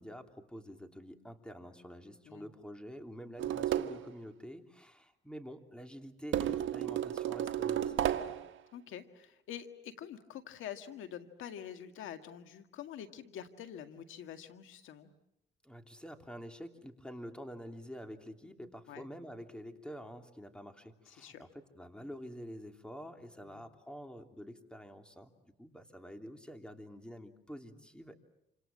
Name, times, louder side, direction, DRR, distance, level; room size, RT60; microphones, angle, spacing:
voice 1, 0.0-8.3 15.6-28.2, equal, 5° left, 5 dB, 3.1 m, -48 dB
sound 1, 3.4-4.1 6.3-8.5, right 11 dB, 75° right, 1.4 m, -32 dB
voice 2, 8.7-15.1 18.9-19.0 21.1-21.4 23.4-23.6, left 9 dB, 85° left, 8 dB, 1.9 m, -46 dB
28.5 x 26.5 x 7.6 m, 0.81 s
cardioid pair, 90°, 20 cm